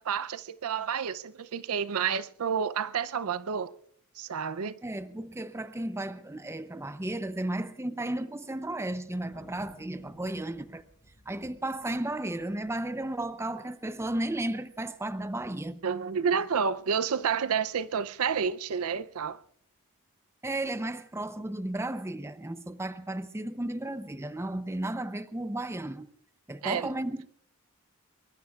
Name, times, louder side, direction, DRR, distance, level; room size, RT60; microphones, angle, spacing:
voice 1, 0.0-3.7 4.2-4.8 15.8-19.4 26.6-26.9, right 6 dB, 70° right, 0.5 m, -30 dB
voice 2, 4.8-10.8 11.3-15.8 20.4-26.1 26.5-27.3, right 1 dB, 10° right, 0.6 m, -34 dB
Thunder, 9.3-14.1 14.4-14.5 14.7-15.3 15.7-16.9, equal, 20° left, 5.7 m, -58 dB
24.5 x 22.0 x 2.4 m
head